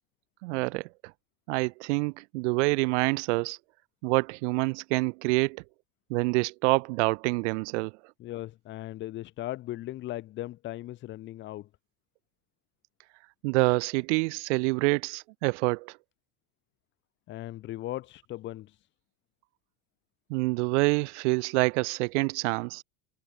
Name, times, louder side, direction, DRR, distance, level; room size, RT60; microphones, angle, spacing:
voice 1, 0.4-0.9 1.5-3.6 4.0-5.6 6.1-7.9 13.4-16.0 20.3-22.8, right 27 dB, 70° right, 0.6 m, -27 dB
voice 2, 8.2-11.7 17.3-18.9, left 15 dB, 30° left, 1.0 m, -38 dB
supercardioid pair, 160°, 36 cm